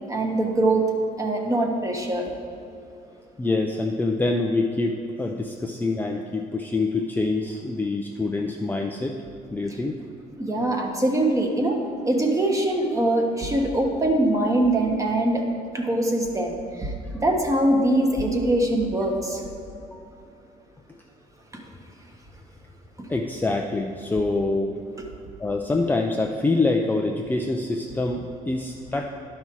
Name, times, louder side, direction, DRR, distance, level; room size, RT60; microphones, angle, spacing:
voice 1, 0.1-0.9 1.2-2.3 10.4-11.8 12.0-15.5 15.7-16.9 17.2-19.4 21.5-21.6 23.0-23.1, right 1 dB, 20° right, 2 dB, 1.3 m, -23 dB
voice 2, 3.4-9.2 9.5-10.0 17.1-17.2 19.9-20.1 23.1-24.7 25.4-29.1, left 2 dB, 10° left, 2 dB, 0.5 m, -25 dB
11.0 x 5.5 x 4.6 m, 2.6 s
cardioid pair, 110°, 17 cm